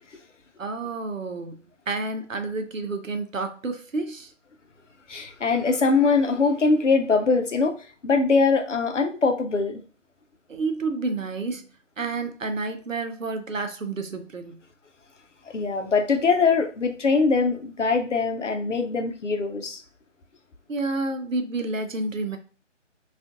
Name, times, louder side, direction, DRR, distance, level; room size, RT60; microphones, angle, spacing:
voice 1, 0.6-4.3 10.5-11.7 12.0-14.6 20.7-22.4, right 3 dB, 85° right, 0.7 m, -30 dB
voice 2, 5.1-7.8 8.0-9.8 15.5-19.8, left 4 dB, 70° left, 0.7 m, -22 dB
3.4 x 2.5 x 2.5 m
figure-of-eight pair, 150°, 38 cm